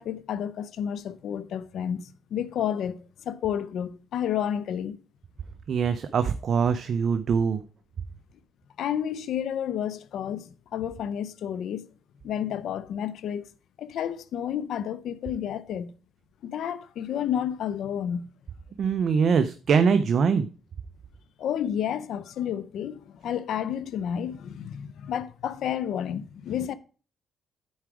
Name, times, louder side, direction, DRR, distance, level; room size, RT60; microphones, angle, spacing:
voice 1, 0.0-5.0 8.8-11.9 12.2-13.5 13.8-15.9 16.4-18.3 21.4-26.7, left 9 dB, 70° left, 0.5 m, -31 dB
voice 2, 5.7-7.6 18.8-20.5, right 6 dB, 55° right, 0.5 m, -23 dB
9.4 x 4.8 x 4.8 m
cardioid pair, 90°, 0 cm